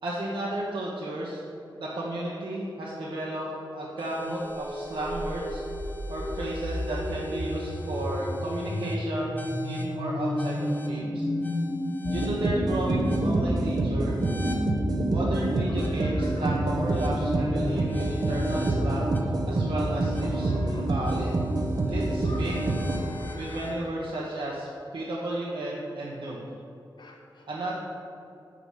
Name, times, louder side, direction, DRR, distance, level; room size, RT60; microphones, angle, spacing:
voice 1, 0.0-1.4 1.8-5.6 6.1-9.3 9.6-11.3 12.1-14.1 15.1-19.1 19.5-20.5 20.9-21.3 21.8-22.6 23.4-26.4 27.5-27.7, right 1 dB, 75° right, -6 dB, 1.0 m, -33 dB
sound 1, 4.0-23.7, left 1 dB, 20° left, 0.8 m, -33 dB
sound 2, 12.1-23.1, right 2 dB, 50° right, 0.8 m, -27 dB
voice 2, 15.8-16.6 18.0-18.3 20.4-20.9 22.3-22.6 22.9-23.7 27.0-27.5, left 2 dB, 65° left, 2 dB, 0.9 m, -47 dB
7.6 x 4.9 x 5.5 m, 2.6 s
wide cardioid pair, 120°, 8 cm